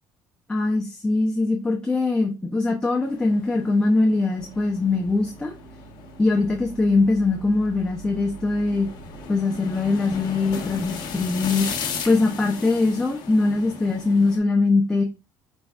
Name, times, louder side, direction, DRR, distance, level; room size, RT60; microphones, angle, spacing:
voice 1, 0.5-5.5 6.2-8.9 9.3-11.7 12.1-15.0, left 3 dB, 10° left, 0 dB, 0.7 m, -22 dB
sound 1, 3.0-14.4, left 6 dB, 60° left, 1.2 m, -37 dB
sound 2, 4.4-9.4, right 8 dB, 55° right, 1.1 m, -44 dB
4.4 x 4.0 x 2.4 m, 0.28 s
cardioid pair, 110°, 8 cm